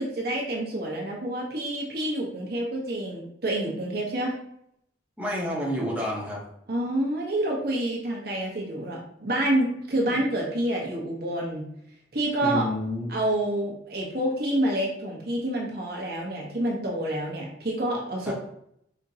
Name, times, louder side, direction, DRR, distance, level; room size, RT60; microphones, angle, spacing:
voice 1, 0.0-4.3 6.7-11.6 12.1-12.7 13.1-18.3, right 1 dB, 55° right, -2 dB, 1.1 m, -28 dB
voice 2, 5.2-6.4 12.4-13.1 18.3-18.4, left 1 dB, 10° right, -5 dB, 1.2 m, -29 dB
5.2 x 3.6 x 2.8 m, 0.72 s
head